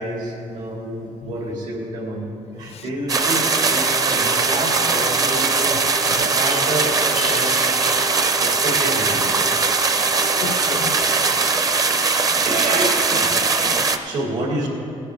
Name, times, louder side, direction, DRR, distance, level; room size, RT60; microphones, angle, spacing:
voice 1, 0.0-5.8 6.2-7.7 8.4-9.3 11.4-12.0 12.4-13.4 14.0-14.7, right 2 dB, 85° right, 2.7 m, -28 dB
sound 1, 3.1-14.0, right 4 dB, 30° right, 0.5 m, -20 dB
sound 2, 3.1-11.5, left 3 dB, 50° right, 0.9 m, -36 dB
voice 2, 7.2-8.2 9.5-9.7 10.3-11.4 13.6-13.9, left 7 dB, 55° left, 0.4 m, -34 dB
17.5 x 9.9 x 3.7 m
cardioid pair, 155°, 12 cm